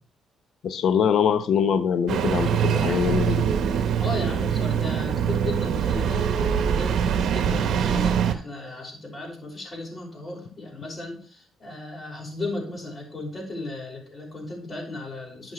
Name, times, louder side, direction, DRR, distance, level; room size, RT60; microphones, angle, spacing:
voice 1, 0.6-3.5, left 7 dB, 65° left, 10 dB, 0.9 m, -23 dB
Engine starting, 2.1-8.3, right 8 dB, 70° right, 1.1 m, -23 dB
voice 2, 4.0-15.5, left 2 dB, 30° left, -1 dB, 5.3 m, -35 dB
12.0 x 6.4 x 3.2 m, 0.44 s
cardioid pair, 90°, 0 cm